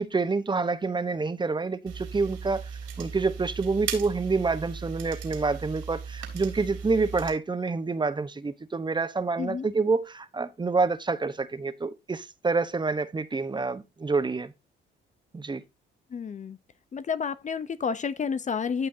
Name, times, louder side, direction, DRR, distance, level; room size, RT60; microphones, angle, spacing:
voice 1, 0.0-2.7 3.0-14.5 15.3-15.6, right 4 dB, 20° right, 0.9 m, -27 dB
sound 1, 1.9-7.3, right 6 dB, 85° right, 3.8 m, -37 dB
voice 2, 9.4-9.7 16.1-16.6 16.9-18.9, left 6 dB, 40° left, 0.6 m, -30 dB
14.5 x 5.9 x 2.7 m
cardioid pair, 90°, 20 cm